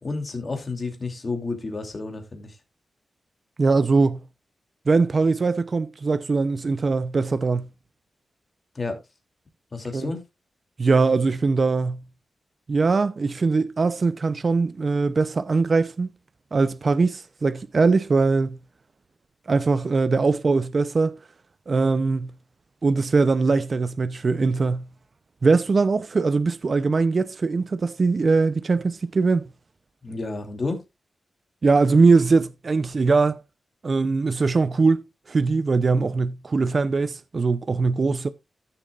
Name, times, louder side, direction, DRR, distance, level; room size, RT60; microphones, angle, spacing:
voice 1, 0.0-2.6 8.7-9.0 9.7-10.2 30.0-30.8, left 3 dB, 40° left, 2.8 m, -30 dB
voice 2, 3.6-4.2 4.9-7.7 9.9-10.1 10.8-12.0 12.7-16.1 16.5-18.6 19.5-21.2 21.7-22.3 22.8-24.9 25.4-29.5 31.6-33.4 33.8-35.0 35.3-38.3, right 4 dB, 45° right, 0.6 m, -21 dB
14.5 x 7.0 x 2.4 m
cardioid pair, 90°, 0 cm